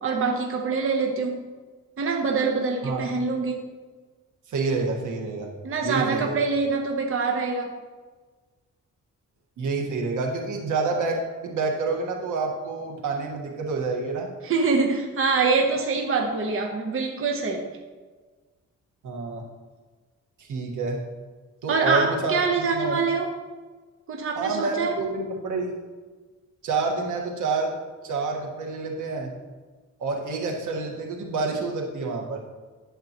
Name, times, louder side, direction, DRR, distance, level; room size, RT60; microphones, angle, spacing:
voice 1, 0.0-1.4 2.0-3.6 5.6-7.8 14.4-17.7 21.7-23.3 24.1-24.9, right 4 dB, 45° right, 2 dB, 1.0 m, -25 dB
voice 2, 4.5-5.5 5.8-6.4 9.6-14.3 19.0-19.4 20.4-21.1 21.6-23.0 24.3-25.7 26.6-27.8 28.0-29.3 30.0-32.4, right 3 dB, 90° right, 1 dB, 1.7 m, -28 dB
11.0 x 7.9 x 3.0 m, 1.4 s
wide cardioid pair, 145°, 30 cm